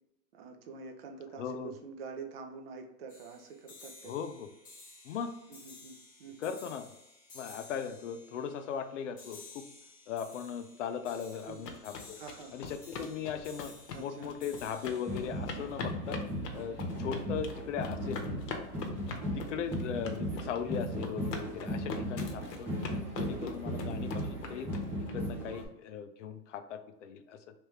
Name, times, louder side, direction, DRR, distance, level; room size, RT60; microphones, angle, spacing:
voice 1, 0.3-4.1 5.5-6.7 11.5-11.8 12.2-12.6 13.9-14.3 17.1-17.4 19.6-19.7 23.6-23.9, right 5 dB, 40° right, 4 dB, 0.6 m, -47 dB
voice 2, 1.4-1.7 4.0-4.5 5.0-5.3 6.4-6.8 7.3-9.6 10.1-12.2 12.5-16.2 16.5-18.2 19.3-22.7 23.2-24.7 25.1-27.4, left 7 dB, 50° left, 9 dB, 0.5 m, -38 dB
sound 1, 3.1-16.5, left 3 dB, 15° left, 0.9 m, -55 dB
sound 2, 11.3-25.1, left 5 dB, 90° left, 0.9 m, -42 dB
sound 3, 15.1-25.7, equal, 5° right, 0.7 m, -37 dB
3.3 x 3.2 x 3.2 m, 0.89 s
hypercardioid pair, 150°, 48 cm